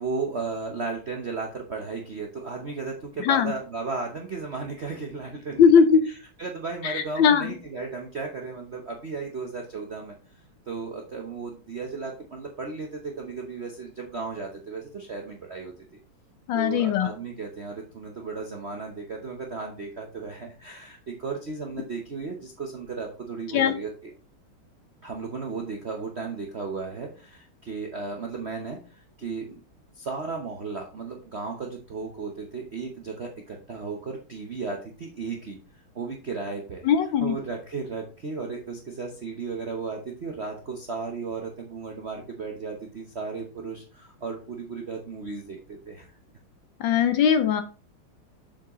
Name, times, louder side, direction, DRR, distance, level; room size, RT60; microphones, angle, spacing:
voice 1, 0.0-5.7 6.0-10.4 10.7-15.7 16.5-24.1 25.0-29.6 29.9-36.9 37.2-46.2 47.3-47.5, right 4 dB, 55° right, 2 dB, 0.7 m, -35 dB
voice 2, 5.6-6.0 6.8-7.6 16.5-17.1 23.5-23.7 36.8-37.3 46.8-47.6, left 7 dB, 70° left, 10 dB, 1.2 m, -19 dB
7.3 x 7.2 x 3.0 m, 0.35 s
omnidirectional pair, 2.4 m